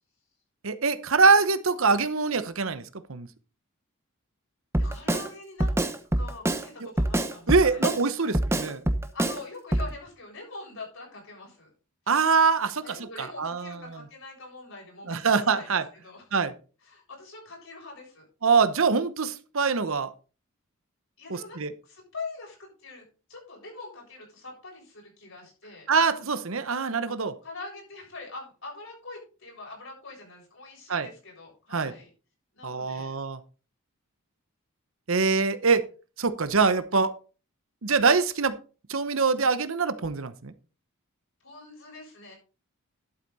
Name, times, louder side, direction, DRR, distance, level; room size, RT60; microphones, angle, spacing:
voice 1, 0.6-2.8 3.1-3.3 7.5-8.8 12.1-13.8 15.1-15.8 16.3-16.5 18.4-20.1 21.3-21.7 25.9-27.3 30.9-31.1 31.7-31.9 32.6-33.4 35.1-35.8 36.2-37.1 37.8-38.6 38.9-40.5, right 4 dB, 65° right, 13 dB, 0.9 m, -24 dB
Drum kit, 4.7-5.3 5.6-6.7 7.0-8.0 8.3-9.4 9.7-9.9, right 1 dB, 10° right, 0.9 m, -25 dB
voice 2, 4.8-5.8 6.2-7.9 8.2-8.3 9.1-11.7 12.8-16.3 16.8-18.3 21.2-25.9 27.4-32.1 32.5-33.2 41.4-42.3, left 3 dB, 60° left, -1 dB, 7.2 m, -43 dB
11.5 x 8.3 x 4.1 m, 0.35 s
head